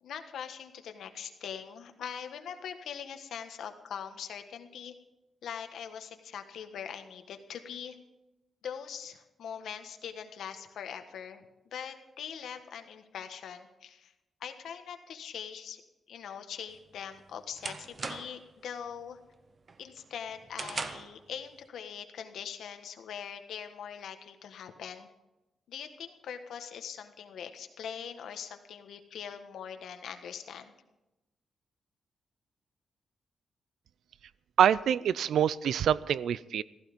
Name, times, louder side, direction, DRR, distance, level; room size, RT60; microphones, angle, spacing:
voice 1, 0.0-4.9 5.4-8.0 8.6-14.1 14.4-15.8 16.1-19.2 19.8-25.1 25.7-30.7, left 8 dB, 80° left, 7 dB, 1.4 m, -42 dB
sound 1, 16.7-18.5 18.9-19.3 19.7-21.2, right 4 dB, 30° right, 0.7 m, -40 dB
voice 2, 34.6-36.6, right 9 dB, 85° right, 19 dB, 0.4 m, -25 dB
15.5 x 14.5 x 5.3 m, 0.99 s
wide cardioid pair, 170°, 0 cm